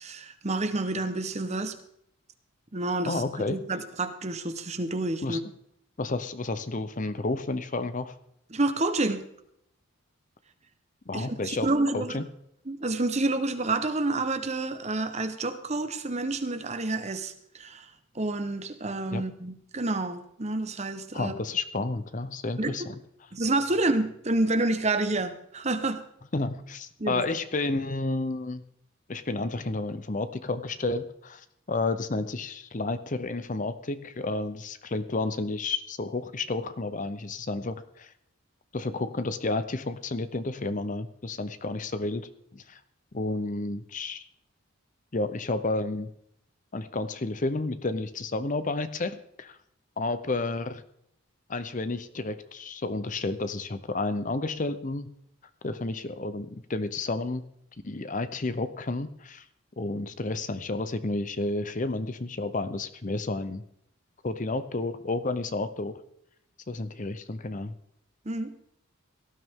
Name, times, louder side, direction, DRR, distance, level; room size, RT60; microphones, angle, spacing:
voice 1, 0.0-1.8 2.7-5.4 8.5-9.2 11.1-12.2 12.7-21.4 22.6-22.8 23.3-26.0 27.0-27.2 68.2-68.5, right 2 dB, 30° right, 8 dB, 1.0 m, -29 dB
voice 2, 3.0-3.6 5.2-5.4 6.0-8.1 11.1-12.3 19.1-19.2 21.1-22.8 26.3-28.6 29.1-38.1 38.7-42.8 43.1-44.2 45.1-46.1 46.7-49.6 50.0-50.8 51.5-55.1 55.6-57.4 57.8-59.4 59.8-63.6 64.2-66.0 66.7-67.7, left 2 dB, 35° left, 12 dB, 0.7 m, -31 dB
18.0 x 12.5 x 3.7 m, 0.73 s
head